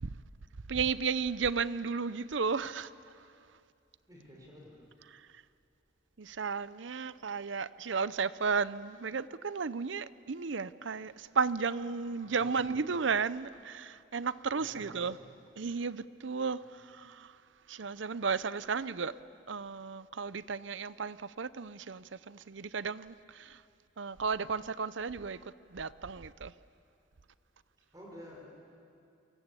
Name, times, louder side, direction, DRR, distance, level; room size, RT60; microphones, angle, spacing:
voice 1, 0.7-2.9 5.1-5.3 6.2-15.2 15.6-17.4 17.7-19.1 19.5-23.6 24.0-25.4 25.7-26.5, right 5 dB, 70° right, 0.7 m, -34 dB
voice 2, 4.1-4.8 12.3-12.8 14.6-15.3 27.9-28.5, equal, 20° right, 5.3 m, -52 dB
29.0 x 23.0 x 8.3 m
head